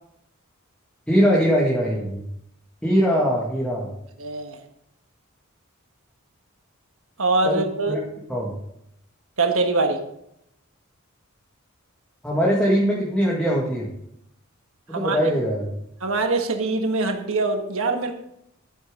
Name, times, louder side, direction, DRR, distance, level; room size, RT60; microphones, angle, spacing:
voice 1, 1.1-2.2 2.8-3.9 7.4-8.0 8.3-8.5 12.2-13.9 14.9-15.7, equal, 5° left, -4 dB, 1.9 m, -21 dB
voice 2, 4.2-4.6 7.2-8.0 9.4-10.0 14.9-15.2 16.0-18.1, right 3 dB, 70° right, 4 dB, 1.4 m, -23 dB
11.5 x 9.6 x 3.8 m, 0.77 s
head